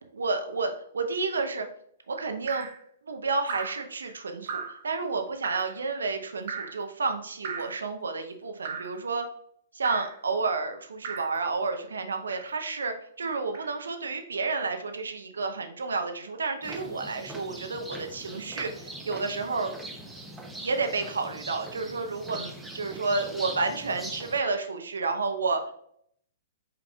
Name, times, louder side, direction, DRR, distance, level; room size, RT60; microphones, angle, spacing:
voice 1, 0.1-1.7 2.1-2.7 3.1-9.3 9.7-19.7 20.6-25.6, right 4 dB, 75° right, 6 dB, 0.7 m, -30 dB
Drip, 2.5-2.8 3.5-3.8 4.5-4.8 5.4-5.8 6.5-6.8 7.4-7.8 8.6-9.0 9.8-10.2 11.0-11.4 12.3-12.6 13.5-13.7, right 5 dB, 55° right, 1.0 m, -36 dB
sound 1, 16.6-24.4, right 1 dB, 5° right, 0.6 m, -41 dB
5.7 x 3.8 x 2.3 m, 0.68 s
figure-of-eight pair, 115°, 0 cm